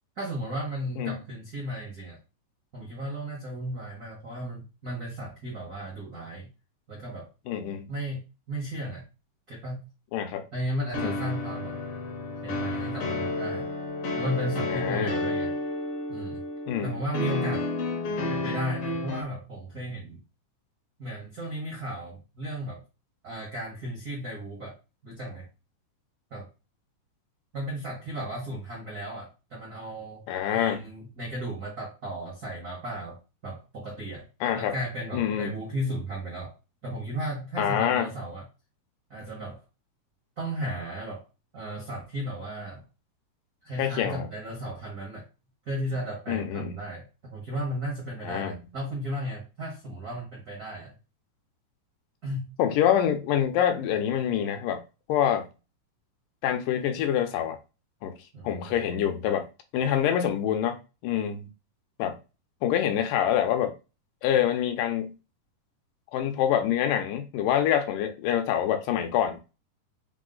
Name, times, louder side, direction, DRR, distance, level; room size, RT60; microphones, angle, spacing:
voice 1, 0.2-2.2 2.7-6.5 6.9-7.3 7.9-9.1 9.5-9.9 10.5-11.8 12.4-13.7 14.2-15.5 16.1-16.4 16.8-17.7 18.3-20.2 21.0-22.8 23.2-24.8 25.0-25.4 26.3-26.5 27.5-30.2 30.5-34.3 34.5-36.5 36.8-38.4 39.1-39.6 40.4-41.2 41.5-42.8 43.6-45.3 45.6-50.9 52.2-52.5 58.3-58.8, right 1 dB, 60° right, 0.9 m, -35 dB
voice 2, 7.5-7.9 10.1-10.4 11.0-11.2 14.7-15.1 16.7-17.0 30.3-30.9 34.4-34.7 35.1-35.6 37.6-38.1 43.8-44.3 46.3-46.7 48.2-48.6 52.6-54.8 55.1-55.5 56.4-57.6 58.0-58.1 58.4-59.4 59.7-60.8 61.0-61.5 62.0-62.2 62.6-63.7 64.2-65.2 66.1-69.5, left 10 dB, 80° left, 2.2 m, -26 dB
sound 1, 10.9-19.2, left 2 dB, 65° left, 1.5 m, -31 dB
5.4 x 2.0 x 3.8 m
omnidirectional pair, 3.9 m